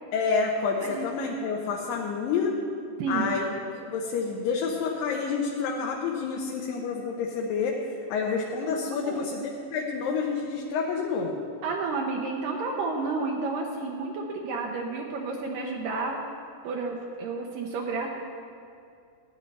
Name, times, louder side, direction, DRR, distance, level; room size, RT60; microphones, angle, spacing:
voice 1, 0.1-2.6 3.1-3.5 3.7-7.8 8.1-11.4, left 5 dB, 80° left, -1 dB, 2.5 m, -28 dB
voice 2, 3.0-3.3 9.1-9.3 11.6-16.2 16.6-18.1, right 4 dB, 80° right, 0 dB, 2.4 m, -31 dB
15.0 x 9.7 x 4.1 m, 2.4 s
omnidirectional pair, 4.0 m